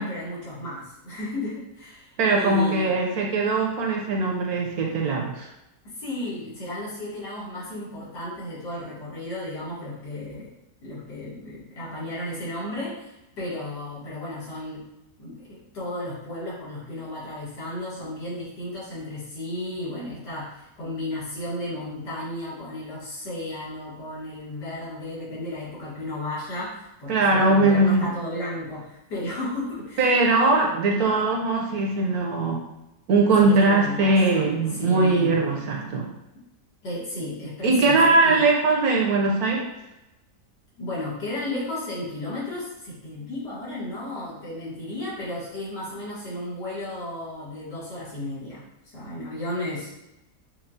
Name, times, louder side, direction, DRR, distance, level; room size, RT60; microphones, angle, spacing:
voice 1, 0.0-2.9 5.8-10.5 10.8-14.8 15.2-30.3 33.4-35.3 36.8-38.5 40.8-49.9, left 1 dB, 75° left, -8 dB, 2.1 m, -34 dB
voice 2, 2.2-5.5 27.1-28.1 30.0-32.6 33.1-36.1 37.6-39.7, right 3 dB, 70° right, 0 dB, 1.0 m, -21 dB
5.4 x 2.3 x 2.6 m, 0.93 s
omnidirectional pair, 1.8 m